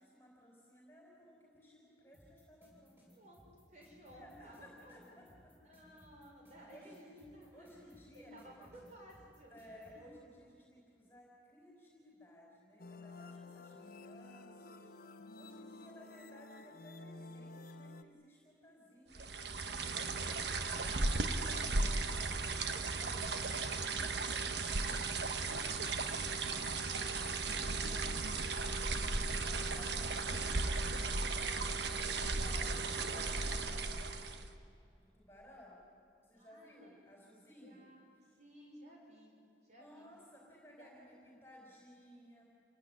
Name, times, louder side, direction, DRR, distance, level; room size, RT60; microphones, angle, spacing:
voice 1, 0.0-3.2 4.1-5.6 6.6-7.1 7.5-8.7 9.5-14.9 15.4-19.2 19.6-23.6 24.2-28.4 29.4-34.5 35.0-35.8 36.2-37.9 39.7-42.5, equal, 10° left, -3 dB, 4.8 m, -59 dB
sound 1, 2.1-9.9, equal, 10° right, 7.5 m, -63 dB
voice 2, 3.7-5.1 5.6-7.8 8.1-10.1 13.7-14.1 36.3-37.0 37.6-38.1 38.4-39.3 39.6-40.0 40.6-41.0, right 1 dB, 40° right, -1 dB, 6.2 m, -58 dB
sound 2, 12.8-18.0, left 2 dB, 50° left, 1.1 m, -52 dB
sound 3, 19.1-34.5, right 3 dB, 65° right, 1.3 m, -36 dB
28.0 x 17.0 x 10.0 m, 2.5 s
head